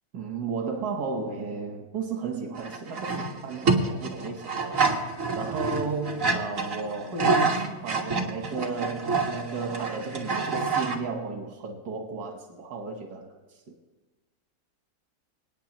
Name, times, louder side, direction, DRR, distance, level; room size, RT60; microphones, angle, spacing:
voice 1, 0.1-4.9 5.3-13.8, right 4 dB, 90° right, 1.8 m, -34 dB
sound 1, 2.5-11.0, right 4 dB, 55° right, 1.8 m, -27 dB
26.5 x 9.2 x 3.0 m
omnidirectional pair, 1.6 m